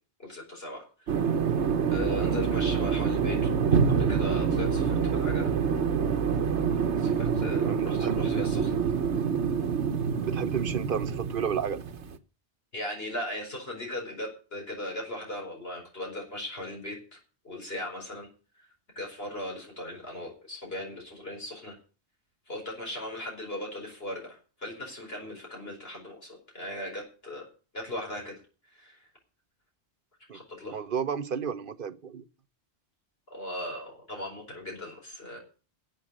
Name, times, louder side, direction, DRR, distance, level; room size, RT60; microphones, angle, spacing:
voice 1, 0.2-1.2 1.9-3.5 3.9-5.5 7.0-8.7 12.7-17.2 17.4-18.3 19.0-21.8 22.5-27.4 27.7-28.4 28.6-29.1 30.3-30.8 33.3-35.4, left 1 dB, 60° left, 5.2 m, -38 dB
sound 1, 1.1-12.2, right 6 dB, 80° right, 1.3 m, -26 dB
voice 2, 7.6-8.2 10.2-11.8 30.3-30.4 30.7-32.2, right 7 dB, 55° right, 1.0 m, -32 dB
12.5 x 7.9 x 8.6 m
omnidirectional pair, 1.1 m